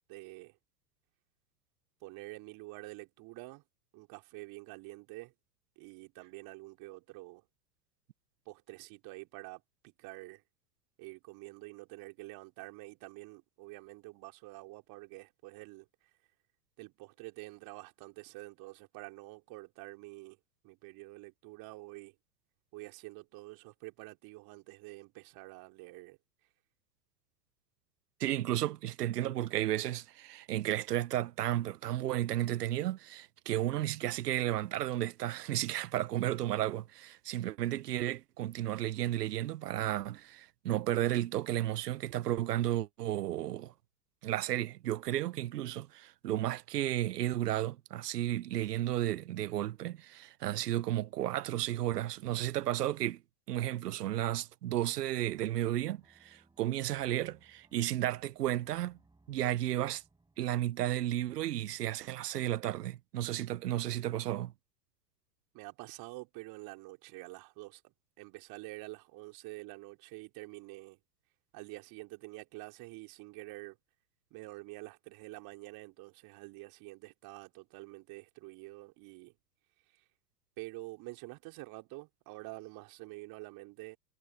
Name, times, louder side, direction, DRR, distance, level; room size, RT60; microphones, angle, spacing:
voice 1, 0.1-0.6 2.0-3.6 3.9-5.3 5.8-7.4 8.5-10.4 11.0-15.9 16.8-20.4 20.6-22.1 22.7-26.2 65.5-71.0 71.5-73.8 74.3-79.4 79.9-80.0 80.6-84.0, right 22 dB, 50° right, 4.3 m, -48 dB
voice 2, 28.2-43.7 44.2-53.2 53.5-59.0 59.3-60.0 60.4-64.5, right 13 dB, 80° right, 1.0 m, -33 dB
sound 1, 55.3-60.9, right 3 dB, 10° right, 5.7 m, -67 dB
hypercardioid pair, 105°, 47 cm